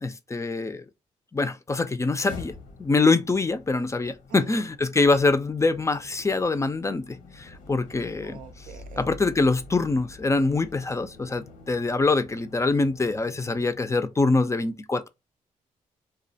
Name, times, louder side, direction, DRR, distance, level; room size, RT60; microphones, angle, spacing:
voice 1, 0.0-0.8 1.3-2.5 2.8-8.4 9.0-15.1, left 3 dB, 20° left, 0.4 m, -24 dB
sound 1, 2.2-14.2, left 3 dB, 80° left, 0.8 m, -47 dB
voice 2, 8.2-9.1, right 9 dB, 75° right, 0.4 m, -44 dB
2.3 x 2.1 x 2.7 m
supercardioid pair, 60°, 14 cm